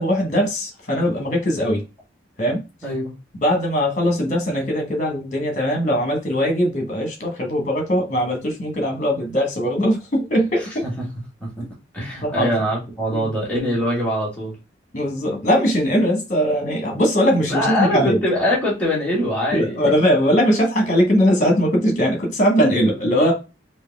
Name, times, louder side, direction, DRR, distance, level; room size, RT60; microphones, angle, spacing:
voice 1, 0.0-1.8 2.4-2.6 3.4-10.9 12.2-12.5 13.1-13.3 14.9-18.2 19.5-23.3, equal, 40° left, 1.4 m, -20 dB
voice 2, 2.8-3.1 10.8-11.0 11.4-11.5 11.9-14.5 17.5-19.7, equal, 5° left, 1.7 m, -23 dB
4.6 x 2.7 x 3.5 m
head